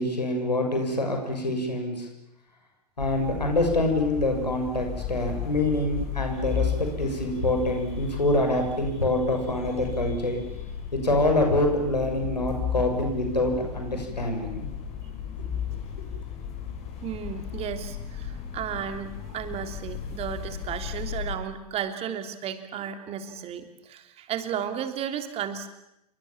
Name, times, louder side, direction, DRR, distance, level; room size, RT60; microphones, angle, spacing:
voice 1, 0.0-2.1 3.0-10.4 10.9-14.7, left 1 dB, 85° left, 3 dB, 6.9 m, -25 dB
sound 1, 3.0-21.3, left 8 dB, 30° left, 7.2 m, -35 dB
voice 2, 17.0-25.7, right 8 dB, 30° right, 7 dB, 3.3 m, -34 dB
28.5 x 24.5 x 7.4 m, 0.83 s
figure-of-eight pair, 100°, 21 cm